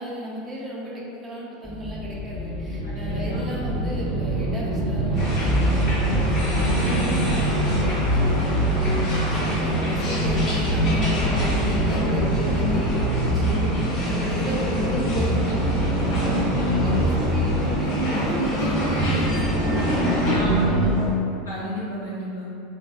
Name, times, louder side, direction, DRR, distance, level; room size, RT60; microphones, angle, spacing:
voice 1, 0.0-13.6 14.0-21.1, right 1 dB, 25° right, -4 dB, 0.6 m, -35 dB
sound 1, 1.6-21.1, right 1 dB, 5° left, 1.0 m, -23 dB
voice 2, 2.8-3.4 6.8-7.0 12.0-12.2 20.3-20.9 21.4-22.5, equal, 85° left, -8 dB, 0.6 m, -34 dB
sound 2, 5.1-20.4, left 1 dB, 40° left, 1.0 m, -32 dB
3.3 x 2.1 x 2.4 m, 2.5 s
hypercardioid pair, 80°, 0 cm